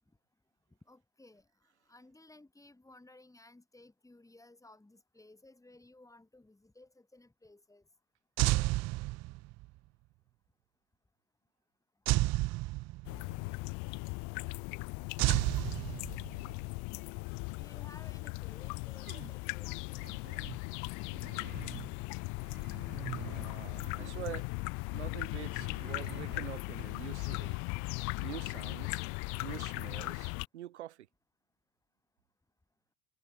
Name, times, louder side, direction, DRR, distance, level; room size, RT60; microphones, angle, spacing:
voice 1, 0.9-1.5 1.9-7.8 17.6-20.4, left 2 dB, 10° left, 5.4 m, -58 dB
sound 1, 8.4-9.6 12.1-13.3 15.2-16.5, right 20 dB, 50° right, 0.6 m, -30 dB
sound 2, 13.0-30.4, left 31 dB, 60° left, 0.6 m, -38 dB
sound 3, 19.1-19.4 19.9-20.7 21.1-22.0 22.4-24.3 25.4-26.8, right 9 dB, 35° right, 1.1 m, -48 dB
voice 2, 23.2-24.5 24.9-27.6 28.2-29.0 29.4-31.1, right 13 dB, 90° right, 1.2 m, -45 dB
hypercardioid pair, 75°, 33 cm